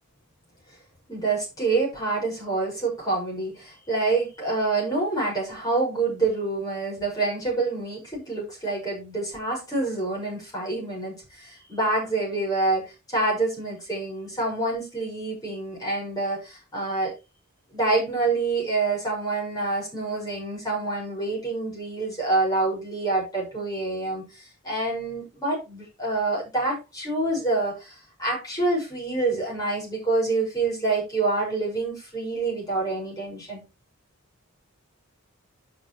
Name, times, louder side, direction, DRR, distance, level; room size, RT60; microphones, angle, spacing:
voice 1, 1.1-17.1 17.7-33.6, right 3 dB, 15° left, -3 dB, 6.3 m, -27 dB
11.5 x 7.1 x 3.3 m, 0.27 s
head